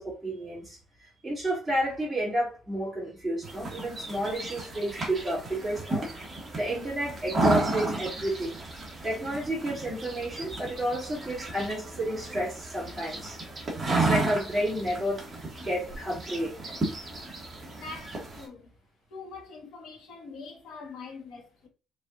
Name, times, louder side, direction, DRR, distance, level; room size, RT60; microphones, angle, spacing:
voice 1, 0.0-6.1 6.5-8.6 9.0-13.4 13.9-15.2 15.6-16.8, right 1 dB, ahead, 2.1 m, -31 dB
sound 1, 3.4-18.5, right 2 dB, 20° right, 1.1 m, -33 dB
voice 2, 17.7-18.7 19.1-21.7, left 4 dB, 65° left, 1.3 m, -43 dB
4.9 x 2.7 x 2.5 m
cardioid pair, 180°, 0 cm